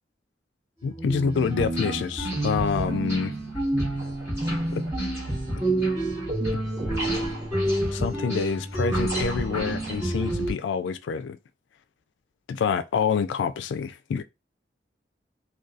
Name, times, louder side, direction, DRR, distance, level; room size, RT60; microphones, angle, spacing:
voice 1, 0.8-3.3 4.7-4.9 7.9-11.4 12.5-14.2, left 6 dB, 90° left, 0.3 m, -27 dB
sound 1, 0.9-10.5, right 1 dB, 15° right, 1.1 m, -28 dB
2.6 x 2.2 x 2.4 m
head